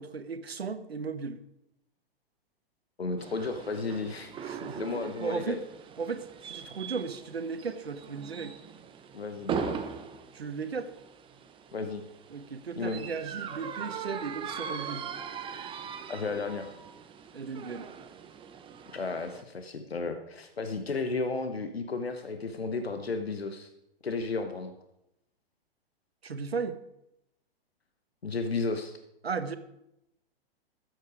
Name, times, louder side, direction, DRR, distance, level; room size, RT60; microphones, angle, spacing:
voice 1, 0.0-1.4 4.4-5.6 6.0-8.5 10.3-10.9 12.3-15.1 17.3-17.9 26.2-26.8 29.2-29.6, right 5 dB, 85° right, 12 dB, 1.0 m, -36 dB
voice 2, 3.0-5.6 9.1-9.8 11.7-12.0 12.8-13.0 16.1-16.7 18.9-23.7 24.0-24.7 28.2-28.9, left 3 dB, 85° left, 7 dB, 1.1 m, -33 dB
sound 1, 3.2-19.4, right 7 dB, 15° right, 0.8 m, -40 dB
13.0 x 7.9 x 4.9 m, 0.85 s
figure-of-eight pair, 110°, 30 cm